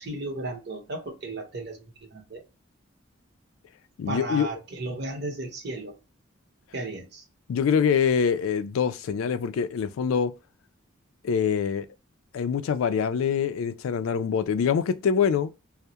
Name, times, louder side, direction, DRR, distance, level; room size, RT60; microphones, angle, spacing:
voice 1, 0.0-1.8 2.1-2.4 4.1-6.0 6.7-7.2, right 2 dB, 55° right, 0.8 m, -34 dB
voice 2, 4.0-4.5 7.5-10.3 11.2-11.9 12.3-15.5, left 7 dB, 80° left, 0.3 m, -24 dB
2.2 x 2.0 x 2.7 m
head